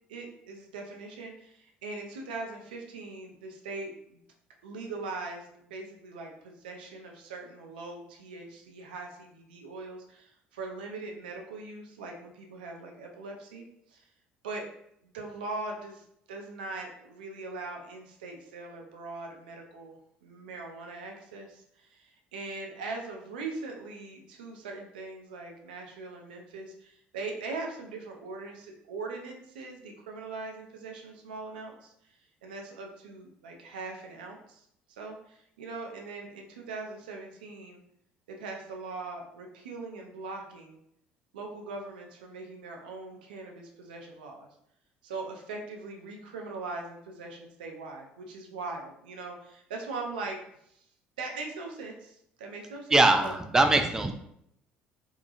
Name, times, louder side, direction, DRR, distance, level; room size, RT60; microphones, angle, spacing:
voice 1, 0.1-4.2 4.6-14.0 14.4-14.6 15.0-31.9 32.4-37.8 38.3-40.8 41.3-44.5 45.0-50.4 50.7-50.8 51.2-53.3, right 3 dB, 85° right, 2 dB, 0.4 m, -41 dB
voice 2, 52.9-54.1, right 2 dB, 10° right, 6 dB, 0.3 m, -22 dB
2.8 x 2.3 x 2.4 m, 0.73 s
hypercardioid pair, 60°, 5 cm